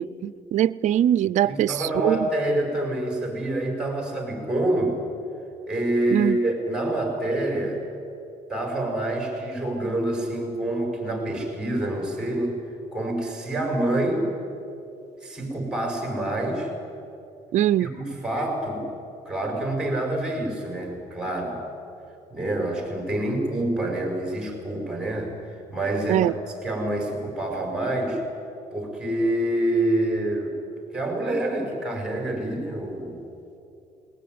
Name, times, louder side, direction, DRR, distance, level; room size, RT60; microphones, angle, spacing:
voice 1, 0.0-2.2 6.1-6.4 17.5-17.9 26.1-26.3, right 11 dB, 60° right, 17 dB, 0.5 m, -22 dB
voice 2, 1.4-5.0 5.7-7.8 8.5-12.6 12.9-14.3 15.2-16.7 17.8-18.9 19.3-21.6 22.3-25.3 25.7-26.3 26.6-28.2 28.7-30.6 30.9-33.2, right 1 dB, 5° right, 2 dB, 6.0 m, -27 dB
20.0 x 18.5 x 9.5 m, 2.8 s
cardioid pair, 100°, 14 cm